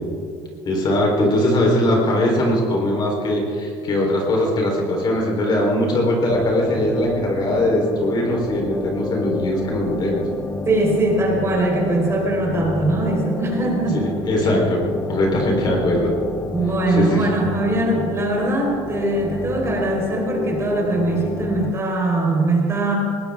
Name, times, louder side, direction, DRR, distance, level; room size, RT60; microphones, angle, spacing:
voice 1, 0.7-10.2 13.9-14.8 15.1-16.1 16.9-17.2, left 1 dB, 40° left, -1 dB, 3.9 m, -20 dB
sound 1, 6.3-21.7, left 4 dB, 20° left, 0.8 m, -30 dB
voice 2, 10.6-14.0 16.5-23.0, right 2 dB, 25° right, -2 dB, 4.6 m, -21 dB
20.0 x 18.0 x 3.7 m, 2.4 s
cardioid pair, 125°, 11 cm